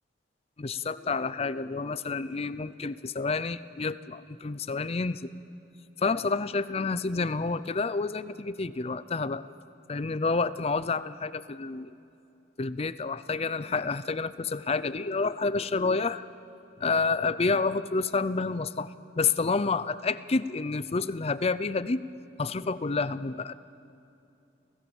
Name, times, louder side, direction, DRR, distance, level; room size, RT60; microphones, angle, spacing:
voice 1, 0.6-5.3 6.0-9.5 9.9-11.9 12.6-16.2 16.8-22.1 22.4-23.5, left 4 dB, 35° left, 15 dB, 0.5 m, -29 dB
29.0 x 16.5 x 7.2 m, 2.7 s
head